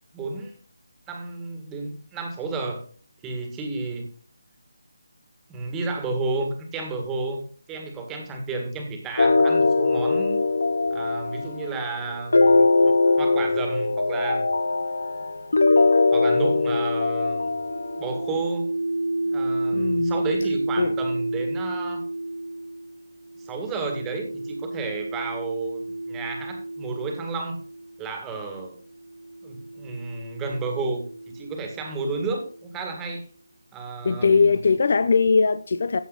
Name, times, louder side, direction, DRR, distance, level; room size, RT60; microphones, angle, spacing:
voice 1, 0.1-0.6 1.1-2.8 3.2-4.1 5.5-10.4 10.9-14.5 16.1-17.5 18.0-18.7 19.3-22.1 23.4-25.8 26.1-27.6 28.0-28.8 29.4-31.0 31.3-33.2 33.7-34.5, right 3 dB, 10° right, 1.8 m, -32 dB
sound 1, 9.2-18.4, left 3 dB, 85° left, 1.2 m, -21 dB
sound 2, 17.7-28.1 29.0-32.7, right 2 dB, 35° right, 1.8 m, -31 dB
voice 2, 19.7-20.1 20.8-20.9 34.0-36.0, left 4 dB, 50° left, 0.6 m, -20 dB
15.0 x 7.1 x 3.9 m
figure-of-eight pair, 170°, 0 cm